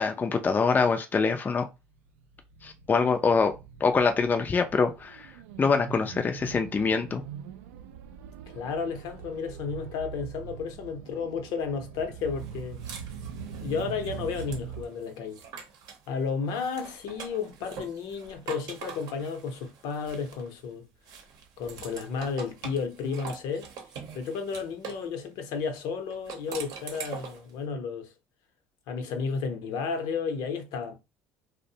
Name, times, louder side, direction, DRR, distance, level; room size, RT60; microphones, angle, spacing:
voice 1, 0.0-1.7 2.6-5.3 5.6-7.2, left 5 dB, 25° left, 0.4 m, -25 dB
sound 1, 1.7-14.9, right 8 dB, 85° right, 0.3 m, -43 dB
voice 2, 8.5-12.8 13.6-15.4 16.1-20.9 21.6-23.7 24.1-28.1 28.9-30.9, left 5 dB, 70° left, 0.7 m, -32 dB
sound 2, 12.4-16.1 16.5-20.6 21.1-25.1 26.1-27.5, right 6 dB, 65° right, 0.7 m, -44 dB
2.5 x 2.1 x 2.7 m
hypercardioid pair, 75°, 7 cm